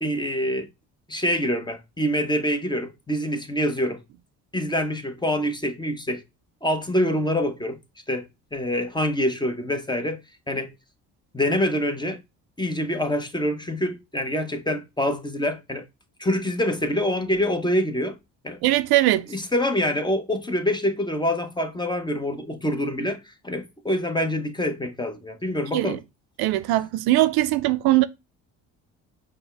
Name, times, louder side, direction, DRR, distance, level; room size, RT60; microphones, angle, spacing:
voice 1, 0.0-0.7 1.1-4.0 4.5-6.2 6.6-7.8 8.1-10.2 10.5-10.7 11.3-12.2 12.6-15.9 16.2-18.2 18.4-18.6 19.3-26.0, left 1 dB, 10° left, 0.7 m, -25 dB
voice 2, 18.6-19.3 25.7-26.0 26.4-28.1, right 16 dB, 70° right, 0.5 m, -20 dB
5.3 x 2.2 x 3.2 m
supercardioid pair, 70°, 38 cm